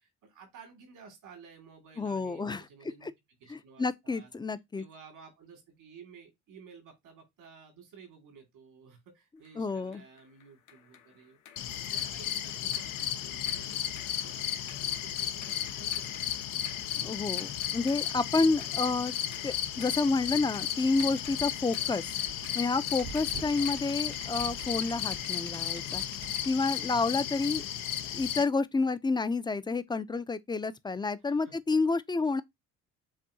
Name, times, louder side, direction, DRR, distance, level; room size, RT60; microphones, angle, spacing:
voice 1, 0.0-3.1 3.4-4.3 4.8-16.4 23.6-23.9 27.4-28.0 31.4-31.5, right 5 dB, 85° right, 2.1 m, -54 dB
voice 2, 2.0-2.6 3.0-3.1 3.5-4.8 9.6-10.0 17.0-19.1 19.4-22.1 22.5-26.0 26.5-27.6 28.1-32.4, left 3 dB, 15° left, 0.4 m, -29 dB
sound 1, 9.5-27.3, left 8 dB, 70° left, 1.0 m, -55 dB
sound 2, 11.6-28.4, left 10 dB, 90° left, 0.6 m, -34 dB
sound 3, 21.0-26.8, right 7 dB, 65° right, 0.7 m, -47 dB
7.2 x 2.7 x 2.7 m
cardioid pair, 85°, 31 cm